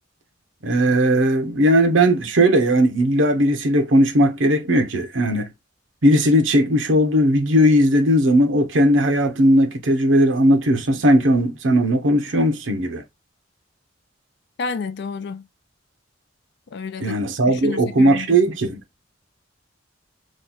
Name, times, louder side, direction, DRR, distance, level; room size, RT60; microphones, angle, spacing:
voice 1, 0.6-5.5 6.0-13.0 17.0-18.8, equal, 75° right, 0.8 m, -17 dB
voice 2, 14.6-15.5 16.7-17.2 17.5-18.4, left 4 dB, 60° left, 0.4 m, -30 dB
3.1 x 2.3 x 3.9 m
head